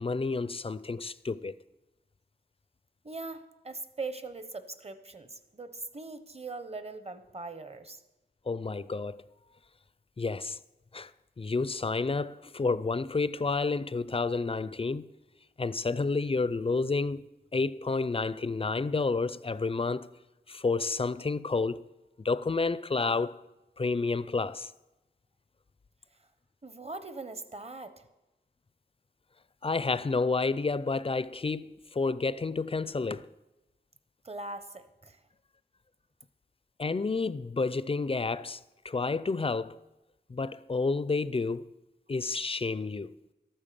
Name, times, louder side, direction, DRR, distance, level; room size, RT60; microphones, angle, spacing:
voice 1, 0.0-1.6 8.5-9.2 10.2-10.6 10.9-11.1 11.4-15.1 15.6-17.3 17.5-20.1 20.5-21.9 22.2-23.4 23.8-24.7 29.6-33.3 36.8-39.8 40.3-41.7 42.1-43.1, left 3 dB, 30° left, 0.4 m, -30 dB
voice 2, 3.0-8.0 26.6-27.9 34.2-35.2, right 3 dB, 35° right, 1.0 m, -41 dB
13.0 x 8.9 x 6.8 m
wide cardioid pair, 95°, 19 cm